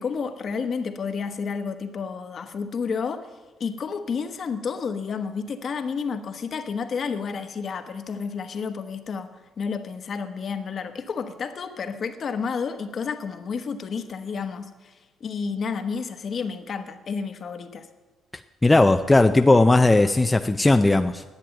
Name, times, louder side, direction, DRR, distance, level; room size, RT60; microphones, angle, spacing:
voice 1, 0.0-3.3 3.6-17.9, left 5 dB, 50° left, 8 dB, 1.1 m, -31 dB
voice 2, 18.6-21.2, left 2 dB, 15° left, 7 dB, 0.4 m, -17 dB
11.0 x 8.4 x 9.0 m, 1.3 s
cardioid pair, 115°, 0 cm